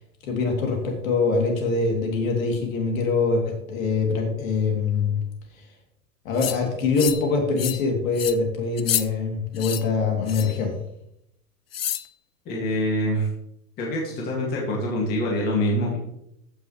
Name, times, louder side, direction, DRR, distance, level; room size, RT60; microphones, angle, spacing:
voice 1, 0.3-5.2 6.2-10.7, left 4 dB, 60° left, 1 dB, 3.0 m, -24 dB
sound 1, 6.4-6.6 7.0-7.3 7.6-7.8 8.1-8.4 8.8-9.0 9.6-9.8 10.3-10.6 11.7-12.1, left 11 dB, 40° left, 0.4 m, -28 dB
voice 2, 12.5-13.3 13.8-16.0, equal, 20° left, -3 dB, 2.2 m, -25 dB
14.5 x 6.4 x 3.2 m, 0.77 s
hypercardioid pair, 160°, 47 cm